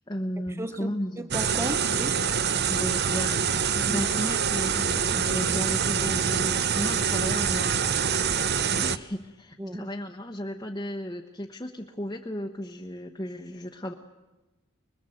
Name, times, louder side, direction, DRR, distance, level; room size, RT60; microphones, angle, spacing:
voice 1, 0.1-1.3 2.7-7.8 8.7-13.9, equal, 20° left, 1 dB, 1.1 m, -34 dB
voice 2, 0.6-2.2 3.8-4.0 9.6-9.9, right 1 dB, 10° right, 11 dB, 0.8 m, -35 dB
sound 1, 1.3-9.0, right 7 dB, 50° right, 0.7 m, -25 dB
24.5 x 22.0 x 7.9 m, 1.1 s
head